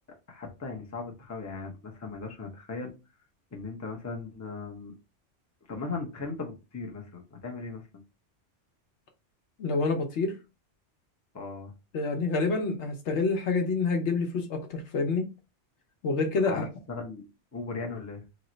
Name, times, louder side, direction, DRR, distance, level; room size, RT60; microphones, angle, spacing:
voice 1, 0.3-2.9 3.5-4.9 5.7-8.0 11.3-11.7 16.5-17.2 17.5-18.2, left 4 dB, 20° left, 0.5 m, -38 dB
voice 2, 9.6-10.3 11.9-15.3 16.0-16.6, left 4 dB, 75° left, 1.0 m, -27 dB
3.0 x 2.1 x 3.8 m
omnidirectional pair, 1.2 m